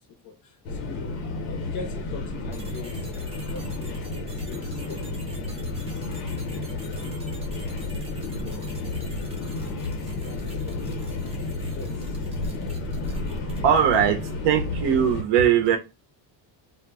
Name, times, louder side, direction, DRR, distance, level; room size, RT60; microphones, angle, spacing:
voice 1, 0.0-3.1 3.5-6.2 8.8-9.0 10.0-11.2 11.6-12.3, left 4 dB, 40° left, 0.5 m, -42 dB
sound 1, 0.6-15.2, left 2 dB, 90° left, 0.8 m, -31 dB
sound 2, 2.5-14.1, right 2 dB, 15° right, 0.4 m, -48 dB
voice 2, 13.1-15.8, right 8 dB, 65° right, 0.6 m, -21 dB
2.1 x 2.0 x 3.4 m
cardioid pair, 150°, 46 cm